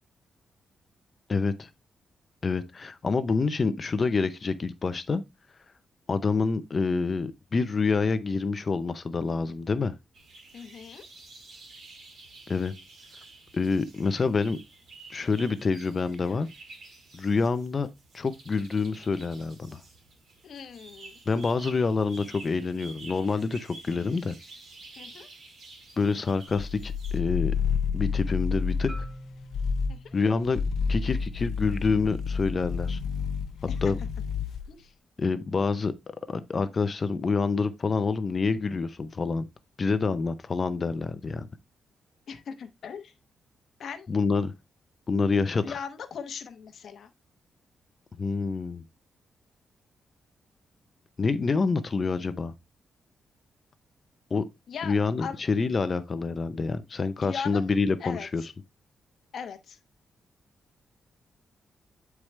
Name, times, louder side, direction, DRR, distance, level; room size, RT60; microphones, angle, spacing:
voice 1, 1.3-1.7 2.4-5.2 6.1-9.9 12.5-12.7 13.5-14.6 15.1-16.5 17.1-17.9 18.1-19.8 21.3-24.3 26.0-27.5 27.9-29.1 30.1-30.6 30.9-33.0 33.8-34.0 35.2-39.4 39.8-41.5 44.1-44.5 45.1-45.8 48.2-48.8 51.2-52.5 54.3-54.5 54.8-58.4, left 4 dB, 30° left, 0.6 m, -27 dB
sound 1, 10.1-27.2, right 3 dB, 55° right, 1.8 m, -50 dB
voice 2, 10.5-11.0 20.4-21.2 25.0-25.3 29.9-30.1 33.7-33.8 34.7-34.9 42.3-43.1 43.8-44.1 45.6-47.1 54.7-55.4 57.2-57.6 58.0-58.3 59.3-59.8, left 6 dB, 55° left, 0.9 m, -39 dB
sound 2, 26.6-29.2 29.5-30.0 30.4-34.7, left 5 dB, 80° left, 0.5 m, -29 dB
Marimba xylophone, 28.9-33.1, equal, 35° right, 2.3 m, -49 dB
8.6 x 4.7 x 3.2 m
wide cardioid pair, 175°, 0 cm